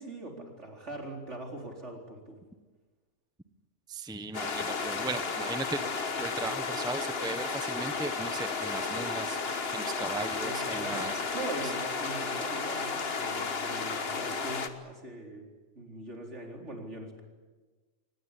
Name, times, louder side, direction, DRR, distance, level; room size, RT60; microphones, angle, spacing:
voice 1, 0.0-2.4 10.4-15.5 15.8-17.2, right 2 dB, 70° right, 2 dB, 4.5 m, -41 dB
voice 2, 3.9-11.1, right 3 dB, 5° right, 10 dB, 0.9 m, -37 dB
sound 1, 4.3-14.7, left 4 dB, 55° left, 1.6 m, -33 dB
24.0 x 19.5 x 9.9 m, 1.3 s
omnidirectional pair, 1.3 m